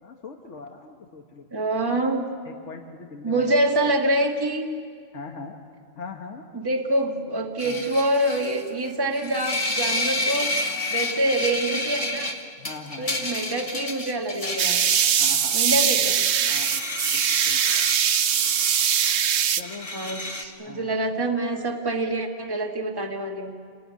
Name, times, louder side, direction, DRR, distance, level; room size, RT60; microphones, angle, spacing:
voice 1, 0.0-1.5 1.9-2.0 2.4-3.5 5.1-5.6 6.0-6.4 7.6-7.8 12.6-13.3 15.2-16.1 16.5-16.8 17.1-17.9 19.6-20.0 20.6-20.9, left 4 dB, 80° left, 3 dB, 1.6 m, -41 dB
voice 2, 1.5-2.3 3.2-4.7 6.5-10.5 10.9-12.4 13.0-14.8 15.5-16.2 19.9-23.6, right 1 dB, 20° right, 2 dB, 1.7 m, -26 dB
sound 1, 7.6-8.7 9.1-15.8 16.3-20.4, left 2 dB, 30° left, 1.8 m, -30 dB
sound 2, 14.6-19.6, right 8 dB, 70° right, 1.1 m, -21 dB
28.0 x 19.0 x 9.4 m, 2.2 s
omnidirectional pair, 1.2 m